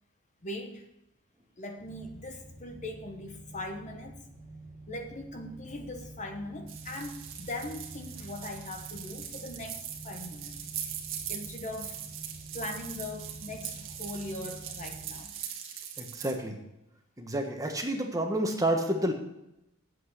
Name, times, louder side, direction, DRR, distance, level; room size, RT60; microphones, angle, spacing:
voice 1, 0.4-0.9 1.6-4.2 4.9-10.5 10.8-11.0 11.3-12.0 12.5-15.4, left 1 dB, 35° left, 4 dB, 1.0 m, -40 dB
sound 1, 1.7-15.2, right 2 dB, 5° left, 2.5 m, -48 dB
sound 2, 6.7-16.3, right 9 dB, 65° right, 1.5 m, -41 dB
voice 2, 16.0-16.6 17.2-19.1, right 1 dB, 15° right, 3 dB, 1.3 m, -29 dB
8.6 x 7.9 x 6.5 m, 0.87 s
head